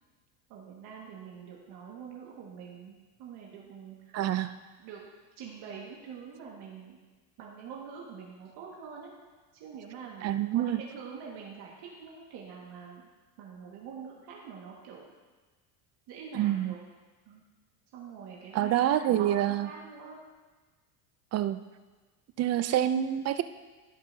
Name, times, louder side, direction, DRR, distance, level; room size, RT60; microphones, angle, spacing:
voice 1, 0.5-4.2 4.8-5.0 5.4-7.0 7.4-9.1 9.5-10.3 10.5-13.0 13.4-15.0 16.1-16.8 17.3-17.4 17.9-20.2, right 6 dB, 60° right, -3 dB, 1.8 m, -45 dB
voice 2, 4.1-4.6 10.2-10.8 16.3-16.7 18.5-19.7 21.3-21.6 22.4-23.4, right 12 dB, 35° right, 12 dB, 0.4 m, -27 dB
15.5 x 5.5 x 2.8 m, 1.3 s
supercardioid pair, 110°, 44 cm